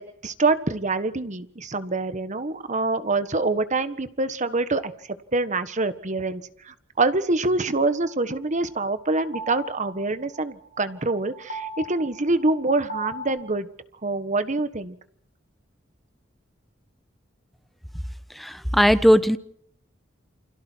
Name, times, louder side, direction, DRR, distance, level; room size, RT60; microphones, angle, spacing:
voice 1, 0.0-4.9 5.3-13.7 14.0-15.0, right 3 dB, 40° right, 11 dB, 1.4 m, -25 dB
sound 1, 8.0-13.4, right 2 dB, 85° left, 7.2 m, -38 dB
voice 2, 18.4-19.4, equal, ahead, 12 dB, 1.1 m, -18 dB
29.0 x 26.5 x 4.7 m, 0.64 s
head